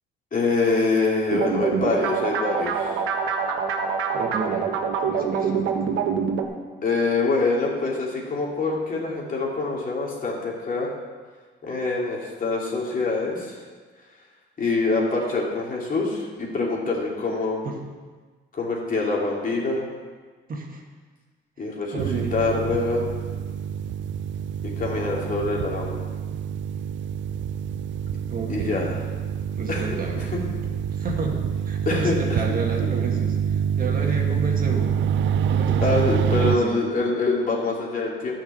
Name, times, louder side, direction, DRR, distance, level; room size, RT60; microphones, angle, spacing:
voice 1, 0.3-2.9 6.8-10.9 11.6-13.6 14.6-17.7 18.5-19.9 21.6-23.1 24.8-26.0 28.5-29.0 29.7-29.9 30.1-30.4 31.9-32.4 35.8-38.3, left 3 dB, 45° left, -2 dB, 2.9 m, -25 dB
sound 1, 1.3-6.4, right 6 dB, 85° right, 1.1 m, -25 dB
voice 2, 4.1-4.7 5.0-5.7 17.6-17.8 20.5-20.8 21.9-22.4 28.3-28.8 29.6-30.3 31.0-35.0 35.5-35.9 36.4-36.8, right 3 dB, 45° right, 0 dB, 1.9 m, -31 dB
sound 2, 22.0-36.6, right 8 dB, 70° right, 0.4 m, -26 dB
10.5 x 6.1 x 7.6 m, 1.4 s
cardioid pair, 90°, 20 cm